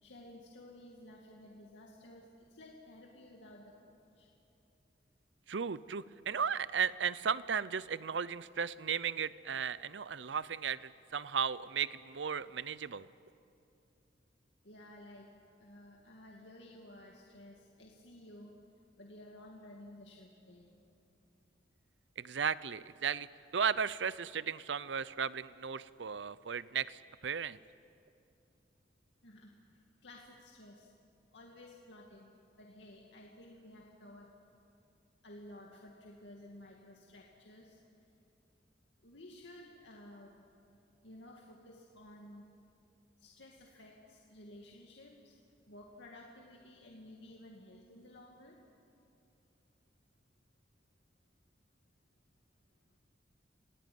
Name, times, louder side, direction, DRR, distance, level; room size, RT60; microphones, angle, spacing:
voice 1, 0.0-2.3 2.5-4.3 14.6-15.3 15.6-18.5 19.0-20.7 29.2-29.5 30.0-30.9 31.3-32.3 32.6-34.3 35.2-37.8 39.0-40.3 41.0-42.5 43.2-45.4 45.7-48.6, left 1 dB, 85° left, -1 dB, 2.3 m, -54 dB
voice 2, 5.5-13.1 22.2-23.3 23.5-27.6, right 7 dB, 85° right, 18 dB, 0.7 m, -35 dB
28.0 x 19.0 x 9.4 m, 2.7 s
head